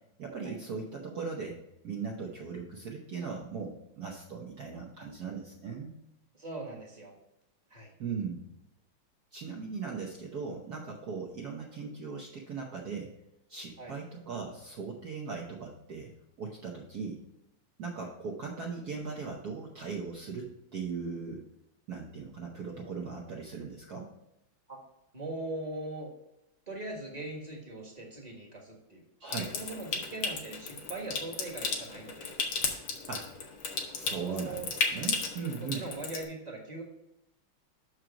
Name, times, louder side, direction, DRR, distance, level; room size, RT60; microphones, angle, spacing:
voice 1, 0.2-1.6 1.8-6.0 8.0-8.5 9.3-13.1 13.5-16.1 16.4-17.2 17.8-21.4 21.9-24.1 29.2-29.5 33.1-33.3 33.9-35.8, right 5 dB, 60° right, -1 dB, 1.2 m, -38 dB
voice 2, 6.3-7.1 7.7-7.9 13.8-13.9 18.0-18.1 24.7-24.8 25.1-26.1 26.7-29.0 29.5-32.3 34.1-34.7 35.6-36.8, right 2 dB, 20° right, -1 dB, 1.3 m, -41 dB
Water tap faucet / Sink (filling or washing) / Trickle dribble, 29.3-36.2, left 4 dB, 80° left, 1.8 m, -35 dB
6.3 x 5.0 x 5.7 m, 0.84 s
omnidirectional pair, 2.2 m